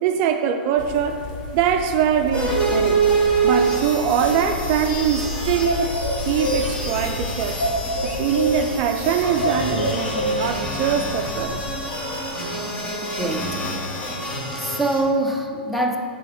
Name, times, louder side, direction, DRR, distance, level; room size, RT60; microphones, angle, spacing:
voice 1, 0.0-1.3 1.5-3.1 3.4-7.6 8.0-11.6, right 8 dB, 45° right, 6 dB, 0.4 m, -23 dB
sound 1, 0.8-11.8, left 3 dB, 50° left, 0.8 m, -33 dB
sound 2, 2.3-15.0, right 3 dB, 25° left, 1.5 m, -26 dB
sound 3, 5.3-9.1 9.4-10.5, equal, 80° left, 0.9 m, -27 dB
voice 2, 13.0-13.6 13.8-14.2 14.5-16.0, right 2 dB, ahead, 1 dB, 0.6 m, -25 dB
7.3 x 4.2 x 4.0 m, 2.4 s
hypercardioid pair, 105°, 5 cm